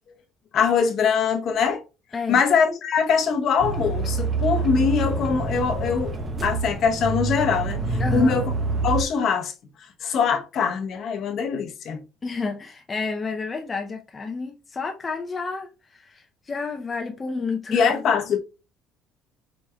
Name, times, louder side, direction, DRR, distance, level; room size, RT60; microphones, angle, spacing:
voice 1, 0.5-1.8 2.3-6.1 6.4-8.5 8.8-9.5 10.0-12.0 17.7-18.4, left 6 dB, 50° left, 0.8 m, -22 dB
sound 1, 3.6-9.0, right 3 dB, 25° right, 0.7 m, -26 dB
voice 2, 8.0-8.4 12.2-17.9, left 4 dB, 20° left, 0.5 m, -30 dB
4.8 x 4.1 x 2.2 m
cardioid pair, 130°, 0 cm